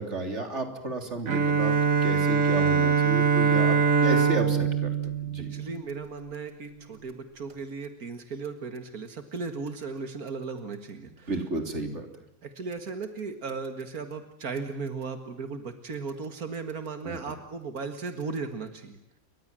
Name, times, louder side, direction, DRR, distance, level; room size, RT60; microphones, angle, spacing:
voice 1, 0.0-1.7 2.0-4.9 5.2-5.5 11.0-12.1 17.0-17.2, right 2 dB, 50° right, 5 dB, 3.7 m, -33 dB
Bowed string instrument, 1.3-6.1, right 6 dB, 65° right, 1.9 m, -23 dB
voice 2, 5.4-11.3 12.4-19.0, right 4 dB, 85° right, 7 dB, 2.3 m, -36 dB
29.5 x 24.0 x 7.6 m, 0.72 s
omnidirectional pair, 1.5 m